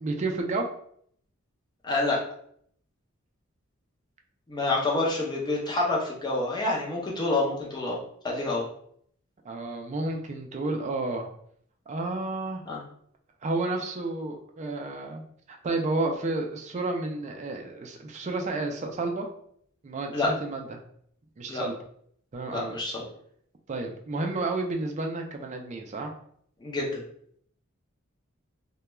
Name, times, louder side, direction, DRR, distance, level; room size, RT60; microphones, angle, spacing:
voice 1, 0.0-0.7 9.4-11.3 11.9-12.6 13.4-15.2 15.5-19.3 19.8-20.8 21.4-21.7 22.3-22.7 23.7-26.1, right 2 dB, 35° right, 3 dB, 0.4 m, -31 dB
voice 2, 1.8-2.2 4.5-8.0 8.2-8.7 12.7-12.8 20.1-20.3 21.5-21.7 22.5-23.0 26.6-27.0, left 2 dB, 20° left, -3 dB, 0.6 m, -27 dB
2.2 x 2.2 x 3.0 m, 0.64 s
head